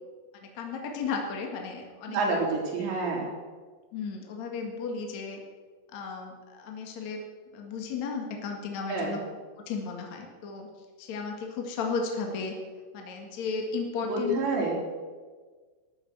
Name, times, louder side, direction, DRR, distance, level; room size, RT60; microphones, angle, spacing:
voice 1, 0.4-2.4 3.9-5.4 5.9-7.2 7.5-9.2 9.7-10.7 11.0-12.5 12.9-14.4, left 4 dB, 50° left, 2 dB, 2.6 m, -34 dB
voice 2, 2.1-3.3 8.9-9.2 14.0-14.8, right 3 dB, 80° right, -1 dB, 5.8 m, -28 dB
13.5 x 11.5 x 7.9 m, 1.5 s
omnidirectional pair, 5.0 m